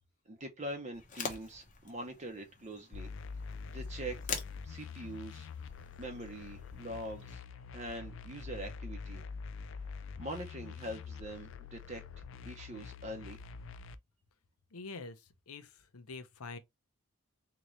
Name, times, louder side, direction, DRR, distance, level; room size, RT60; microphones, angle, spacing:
voice 1, 0.3-3.1 3.7-4.2 4.6-5.5 6.0-7.4 7.7-9.2 9.8-12.0 12.5-13.4, right 1 dB, 30° right, 0.6 m, -43 dB
sound 1, 0.9-7.3, left 6 dB, 35° left, 0.8 m, -46 dB
sound 2, 2.9-14.0, left 5 dB, 55° left, 0.3 m, -45 dB
voice 2, 14.7-16.6, left 4 dB, 85° left, 0.7 m, -46 dB
3.8 x 2.9 x 3.0 m
head